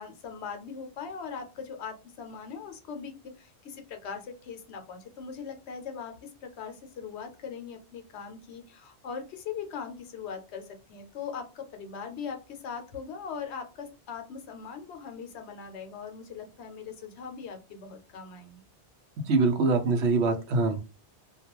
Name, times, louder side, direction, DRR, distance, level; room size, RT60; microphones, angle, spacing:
voice 1, 0.0-18.6, left 6 dB, 75° left, 5 dB, 0.9 m, -40 dB
voice 2, 19.3-20.8, right 3 dB, 75° right, 5 dB, 0.9 m, -24 dB
2.3 x 2.2 x 2.9 m, 0.30 s
omnidirectional pair, 1.2 m